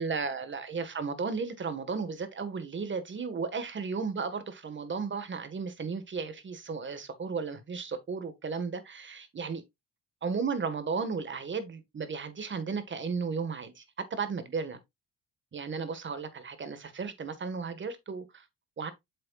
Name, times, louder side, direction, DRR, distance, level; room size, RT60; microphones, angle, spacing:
voice 1, 0.0-9.6 10.2-13.8 14.1-14.8 15.5-18.4 18.8-18.9, right 5 dB, 40° right, 1.7 m, -34 dB
8.1 x 6.6 x 2.5 m
cardioid pair, 90°, 30 cm